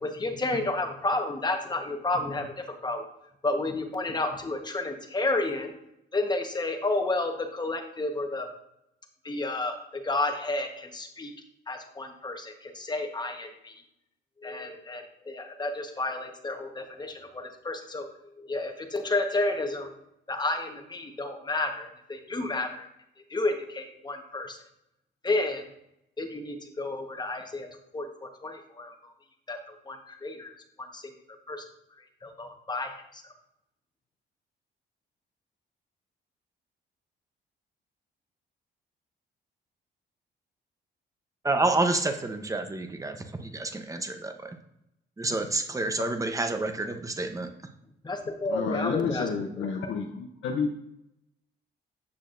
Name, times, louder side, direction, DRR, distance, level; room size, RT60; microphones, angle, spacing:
voice 1, 0.0-3.1 3.4-5.7 6.1-8.5 9.2-11.3 11.7-13.8 14.4-18.1 18.4-19.9 20.3-22.9 23.3-24.6 25.2-25.7 26.2-27.7 27.9-29.1 29.5-31.1 31.5-31.6 32.0-33.2 48.0-49.7, left 2 dB, 20° left, 4 dB, 1.1 m, -31 dB
voice 2, 41.4-44.6 45.2-47.5, right 2 dB, 15° right, 6 dB, 0.8 m, -29 dB
voice 3, 48.5-50.7, left 5 dB, 75° left, 2 dB, 0.7 m, -30 dB
8.6 x 6.4 x 2.5 m, 0.80 s
cardioid pair, 90°, 20 cm